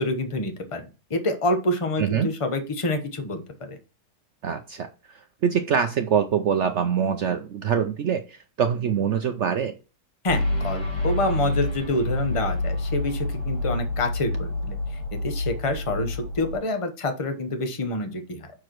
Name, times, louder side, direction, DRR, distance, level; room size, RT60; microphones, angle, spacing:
voice 1, 0.0-3.8 10.2-14.8 15.1-18.5, left 2 dB, 25° left, 6 dB, 0.9 m, -27 dB
voice 2, 2.0-2.3 4.4-9.7, right 7 dB, 85° right, 8 dB, 0.6 m, -24 dB
sound 1, 10.3-16.6, left 1 dB, 75° left, 4.2 m, -28 dB
6.3 x 4.8 x 4.5 m, 0.32 s
omnidirectional pair, 1.9 m